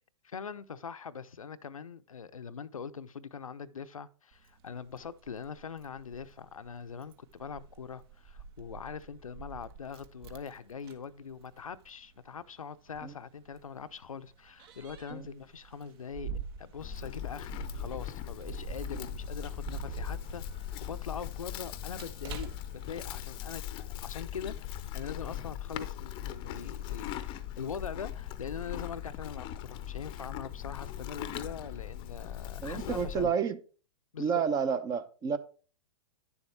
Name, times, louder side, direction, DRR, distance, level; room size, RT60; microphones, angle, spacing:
voice 1, 0.2-16.3 16.6-33.3 34.1-34.4, left 6 dB, 80° left, 0.6 m, -42 dB
Keys jangling, 4.3-23.4, right 6 dB, 45° right, 1.2 m, -47 dB
Livestock farm animals working animals, 16.8-33.3, left 12 dB, 30° left, 0.7 m, -40 dB
voice 2, 32.6-33.6 34.2-35.4, right 6 dB, 20° right, 0.7 m, -30 dB
10.0 x 7.2 x 3.3 m
figure-of-eight pair, 115°, 17 cm